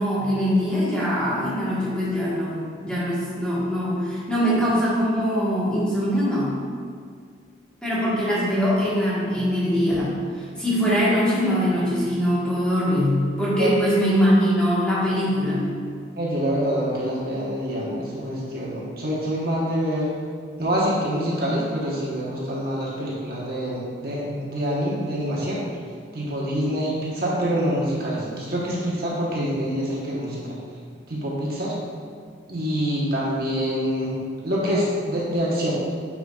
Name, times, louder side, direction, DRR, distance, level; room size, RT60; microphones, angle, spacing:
voice 1, 0.0-6.5 7.8-15.7, equal, 5° left, -9 dB, 1.6 m, -22 dB
voice 2, 16.2-20.1 20.6-25.6 26.1-30.5 31.1-31.7 32.5-34.2 34.4-35.7, equal, 55° right, -6 dB, 1.3 m, -26 dB
9.0 x 4.9 x 2.5 m, 2.2 s
head